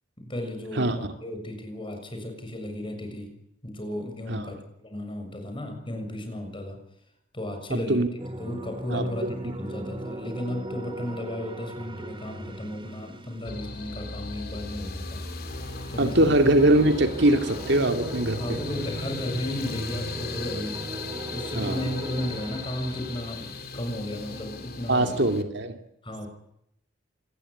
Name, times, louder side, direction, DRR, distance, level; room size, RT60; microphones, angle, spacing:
voice 1, 0.2-3.4 3.6-6.8 7.3-8.1 8.4-15.3 15.9-16.9 18.4-20.9 21.3-25.2 26.0-26.3, left 1 dB, 25° left, 6 dB, 6.6 m, -34 dB
voice 2, 7.7-8.1 8.9-9.3 16.0-18.6 21.6-21.8 24.9-25.8, right 1 dB, 55° right, 7 dB, 2.4 m, -22 dB
sound 1, 8.2-14.0 14.4-23.6, right 1 dB, 25° right, 2.0 m, -38 dB
sound 2, 13.4-25.4, left 4 dB, 45° left, 3.0 m, -38 dB
27.0 x 20.0 x 9.9 m, 0.77 s
head